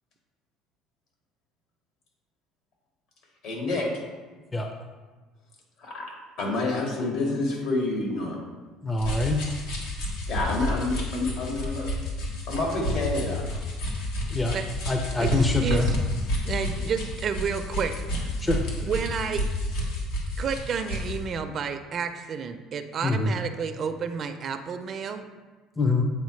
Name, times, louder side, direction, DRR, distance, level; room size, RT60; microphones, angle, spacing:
voice 1, 3.4-3.9 5.8-8.4 10.3-11.9 12.5-13.4, left 2 dB, 65° left, -1 dB, 1.9 m, -28 dB
voice 2, 8.8-9.4 14.3-14.6 14.9-15.9 18.4-18.6 23.0-23.3 25.8-26.0, left 2 dB, 15° left, 3 dB, 0.5 m, -24 dB
sound 1, 9.0-21.2, left 1 dB, 90° left, 1.4 m, -30 dB
voice 3, 15.2-15.9 16.4-18.3 18.8-19.5 20.4-25.2, right 6 dB, 45° right, 8 dB, 0.4 m, -31 dB
8.1 x 4.4 x 3.2 m, 1.3 s
cardioid pair, 115°, 0 cm